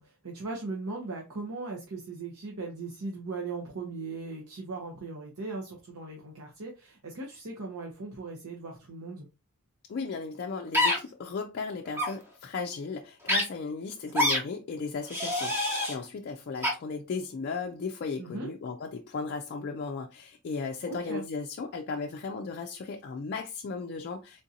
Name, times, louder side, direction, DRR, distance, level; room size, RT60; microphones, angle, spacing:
voice 1, 0.0-9.3 18.2-18.5 20.9-21.2, right 3 dB, 80° right, 0.8 m, -38 dB
voice 2, 9.9-24.4, left 4 dB, 45° left, 0.4 m, -36 dB
sound 1, 10.7-11.0 11.9-12.1 13.3-13.4 14.1-14.4 15.1-15.9 16.6-16.7, left 1 dB, 10° right, 0.8 m, -26 dB
3.7 x 2.5 x 2.7 m
head